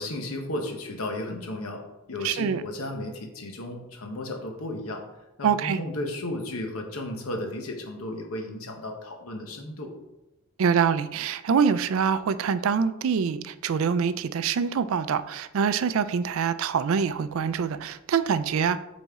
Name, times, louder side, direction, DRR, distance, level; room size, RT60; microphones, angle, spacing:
voice 1, 0.0-1.8 2.1-5.0 5.4-9.9, left 1 dB, 75° left, 3 dB, 1.1 m, -34 dB
voice 2, 2.2-2.6 5.4-5.8 10.6-18.8, right 6 dB, 65° right, 13 dB, 0.4 m, -25 dB
7.0 x 4.2 x 3.6 m, 0.96 s
head